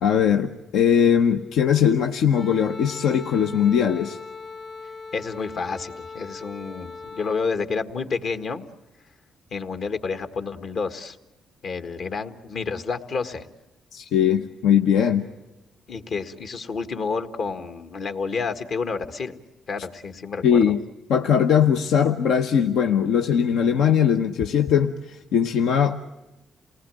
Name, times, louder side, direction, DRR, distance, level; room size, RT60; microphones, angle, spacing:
voice 1, 0.0-4.2 13.9-15.2 20.4-20.8 21.1-26.1, left 8 dB, 80° left, 5 dB, 0.9 m, -20 dB
Wind instrument woodwind instrument, 2.3-7.5, left 4 dB, 35° left, 1.7 m, -39 dB
voice 2, 5.1-8.6 9.5-11.2 11.6-13.5 15.9-19.4 19.7-20.7, left 4 dB, 60° left, 8 dB, 1.6 m, -29 dB
28.5 x 19.0 x 9.0 m, 1.0 s
cardioid pair, 90°, 0 cm